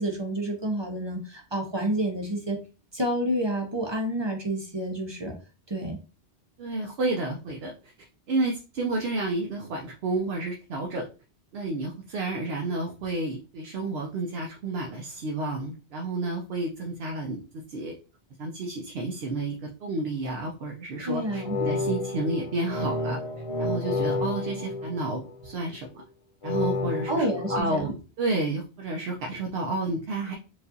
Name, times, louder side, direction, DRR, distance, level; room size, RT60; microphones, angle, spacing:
voice 1, 0.0-2.6 2.9-5.3 5.7-6.0 21.1-21.6 27.1-27.9, right 1 dB, 30° right, 1 dB, 0.5 m, -29 dB
voice 2, 6.6-7.7 8.3-11.1 11.5-17.9 18.4-19.6 19.8-23.2 23.6-25.9 26.4-30.3, right 2 dB, 70° right, 1 dB, 0.8 m, -31 dB
sound 1, 21.2-25.6 26.4-27.6, left 3 dB, 60° left, 0.3 m, -30 dB
4.6 x 2.4 x 2.6 m, 0.34 s
omnidirectional pair, 1.1 m